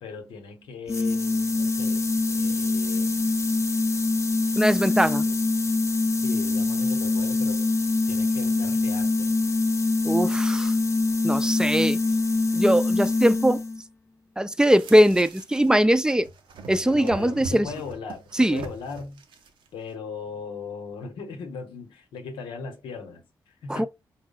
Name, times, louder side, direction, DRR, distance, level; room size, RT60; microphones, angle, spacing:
voice 1, 0.0-3.5 5.1-5.4 6.2-7.7 8.1-9.3 16.8-19.2 19.7-23.9, left 5 dB, 85° left, 0.9 m, -39 dB
sound 1, 0.9-13.8, left 3 dB, 35° left, 0.6 m, -24 dB
voice 2, 4.6-5.2 10.0-10.7 11.2-12.0 12.5-13.6 14.4-16.3 16.7-17.7 18.4-18.6 23.7-23.9, equal, 10° right, 0.5 m, -21 dB
sound 2, 14.6-15.8 16.1-19.7, right 4 dB, 80° right, 0.7 m, -41 dB
4.4 x 2.0 x 3.9 m
supercardioid pair, 45°, 8 cm